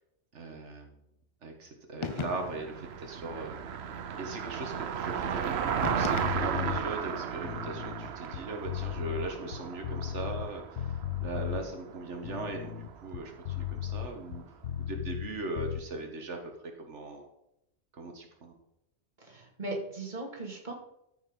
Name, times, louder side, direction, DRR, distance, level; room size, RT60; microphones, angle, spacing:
voice 1, 0.3-0.9 1.4-3.6 4.2-14.4 14.8-17.3 17.9-18.5, right 3 dB, 90° right, 3 dB, 1.7 m, -39 dB
sound 1, 2.0-2.8 5.8-6.9, left 6 dB, 55° left, 0.3 m, -38 dB
Car passing by, 2.1-14.4, right 7 dB, 70° right, 1.0 m, -35 dB
sound 2, 6.2-6.8 7.3-10.5 10.8-11.6 12.1-15.3 15.6-15.8, left 11 dB, 80° left, 1.0 m, -36 dB
voice 2, 19.2-20.7, right 2 dB, 40° right, 0 dB, 2.6 m, -38 dB
13.5 x 5.8 x 5.4 m, 0.81 s
omnidirectional pair, 1.2 m